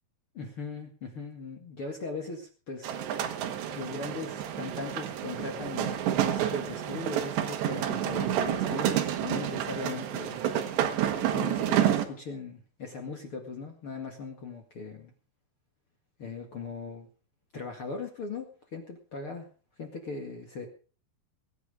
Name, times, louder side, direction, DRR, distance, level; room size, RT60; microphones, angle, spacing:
voice 1, 0.3-3.0 3.8-10.4 11.2-15.1 16.2-17.1 17.5-19.5 19.8-20.7, left 4 dB, 45° left, 3 dB, 1.9 m, -39 dB
sound 1, 2.8-12.1, right 10 dB, 75° right, 3.6 m, -29 dB
22.0 x 9.6 x 4.9 m, 0.39 s
omnidirectional pair, 5.2 m